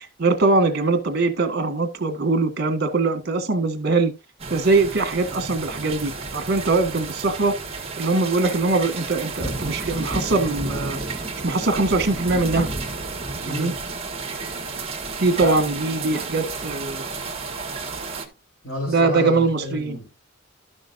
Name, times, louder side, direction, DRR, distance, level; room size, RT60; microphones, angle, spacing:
voice 1, 0.0-4.1 4.5-7.5 8.0-11.0 11.4-12.7 13.5-13.7 15.2-17.0 18.9-20.0, right 3 dB, 55° right, 1.7 m, -22 dB
sound 1, 4.4-18.3, right 3 dB, 30° right, 1.5 m, -31 dB
voice 2, 13.4-13.7 15.4-15.6 18.6-20.2, equal, 65° left, 4.7 m, -30 dB
12.5 x 6.2 x 2.6 m
head